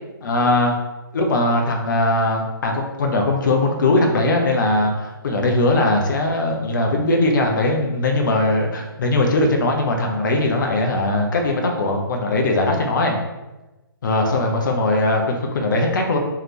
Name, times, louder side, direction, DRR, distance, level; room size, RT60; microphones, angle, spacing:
voice 1, 0.2-0.7 1.1-13.2 14.0-16.2, left 2 dB, 55° left, 2 dB, 0.9 m, -20 dB
3.6 x 3.3 x 2.9 m, 1.1 s
figure-of-eight pair, 140°, 12 cm